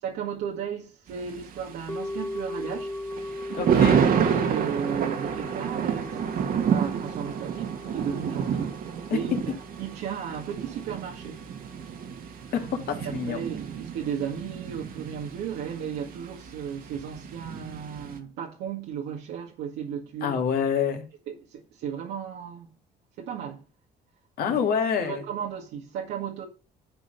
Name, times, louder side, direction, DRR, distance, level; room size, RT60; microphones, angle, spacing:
voice 1, 0.0-3.0 3.6-6.2 6.7-8.8 9.1-11.4 13.0-20.4 21.3-22.7 23.2-23.6 24.5-24.6 25.0-26.5, right 8 dB, 80° right, 1.9 m, -35 dB
Thunder, 1.1-18.2, right 7 dB, 55° right, 1.7 m, -29 dB
sound 1, 1.9-12.2 12.4-12.5, left 1 dB, 15° left, 0.6 m, -39 dB
voice 2, 3.6-4.0 9.1-9.4 12.5-13.4 20.2-21.0 24.4-25.2, left 7 dB, 65° left, 2.6 m, -27 dB
11.5 x 4.0 x 6.5 m
cardioid pair, 110°, 17 cm